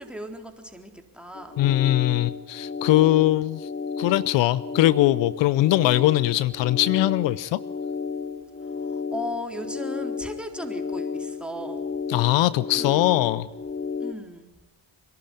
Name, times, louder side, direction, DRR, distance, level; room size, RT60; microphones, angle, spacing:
voice 1, 0.0-1.6 8.6-11.8 12.8-13.4 14.0-14.5, equal, ahead, 3 dB, 3.9 m, -36 dB
sound 1, 1.3-14.1, left 5 dB, 25° left, 1.3 m, -32 dB
voice 2, 1.6-3.7 4.0-7.6 12.1-13.5, left 15 dB, 75° left, 19 dB, 0.6 m, -21 dB
25.5 x 12.0 x 10.0 m, 1.1 s
supercardioid pair, 50°, 44 cm